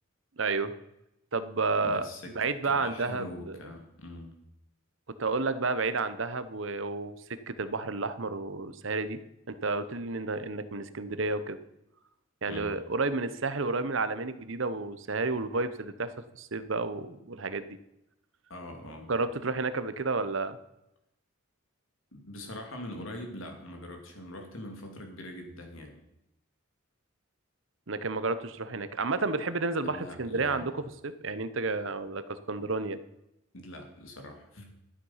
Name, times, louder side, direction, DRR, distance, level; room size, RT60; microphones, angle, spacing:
voice 1, 0.4-0.7 1.3-2.1 2.3-3.6 5.2-7.2 7.5-9.2 9.5-11.6 12.4-16.1 16.4-17.8 19.1-20.6 27.9-33.0, right 3 dB, 65° right, 13 dB, 0.9 m, -31 dB
voice 2, 1.8-2.4 2.6-4.3 12.5-12.8 18.5-19.1 22.1-26.0 29.8-30.7 33.5-34.7, left 1 dB, 75° left, 4 dB, 2.4 m, -43 dB
12.5 x 9.5 x 5.7 m, 0.86 s
head